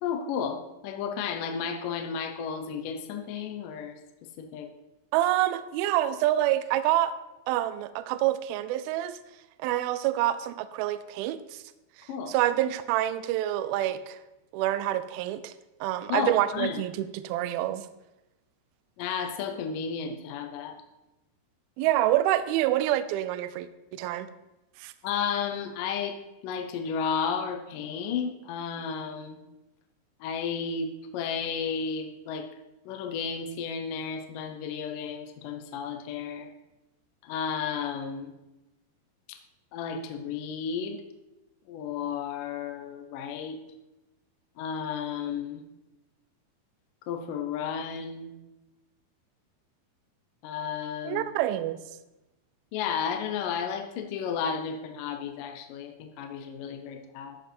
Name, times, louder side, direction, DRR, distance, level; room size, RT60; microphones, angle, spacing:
voice 1, 0.0-3.9 4.4-4.7 12.1-12.4 16.1-16.8 19.0-20.8 25.0-26.2 26.4-29.4 30.2-32.5 32.9-36.5 37.2-38.3 39.7-41.0 41.7-43.6 44.6-45.6 47.1-48.3 50.4-51.3 52.7-57.4, left 6 dB, 75° left, 4 dB, 2.0 m, -33 dB
voice 2, 5.1-7.1 7.5-9.2 9.6-11.6 12.3-14.2 14.5-15.5 15.8-17.8 21.8-24.3 24.8-24.9 51.0-51.8, right 13 dB, 80° right, 13 dB, 2.2 m, -27 dB
13.5 x 5.4 x 4.4 m, 1.0 s
omnidirectional pair, 4.7 m